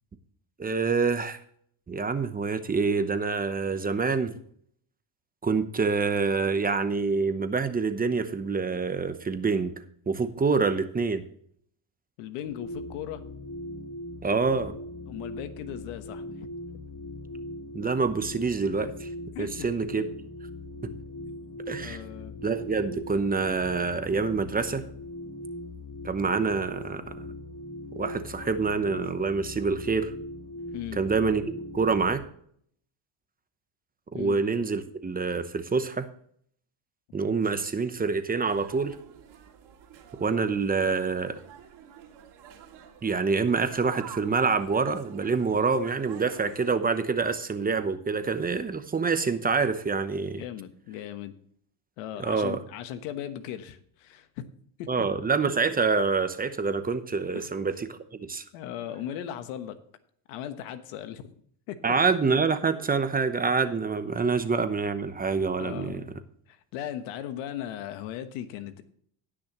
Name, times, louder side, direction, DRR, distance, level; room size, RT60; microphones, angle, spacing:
voice 1, 0.6-1.4 1.9-4.3 5.4-9.7 10.1-11.2 14.2-14.8 17.7-19.1 19.4-20.0 21.7-22.0 22.4-24.8 26.0-27.3 28.0-30.1 30.9-31.4 31.7-32.2 34.1-36.1 37.1-39.0 40.2-41.4 43.0-50.4 52.2-52.6 54.9-58.4 61.8-66.0, right 4 dB, 20° right, 10 dB, 0.9 m, -26 dB
voice 2, 12.2-13.2 15.1-16.2 19.3-19.5 21.3-21.4 21.8-22.4 30.7-31.0 34.1-34.4 50.3-51.3 52.0-54.5 54.8-55.0 57.3-57.5 58.5-59.8 60.3-61.4 61.7-61.8 65.6-66.2 66.5-68.8, left 11 dB, 90° left, 10 dB, 1.3 m, -37 dB
sound 1, 12.4-32.2, left 1 dB, 50° left, 3.2 m, -40 dB
sound 2, 38.5-46.8, right 10 dB, 65° right, 2.7 m, -47 dB
18.5 x 6.3 x 3.1 m, 0.62 s
cardioid pair, 115°, 46 cm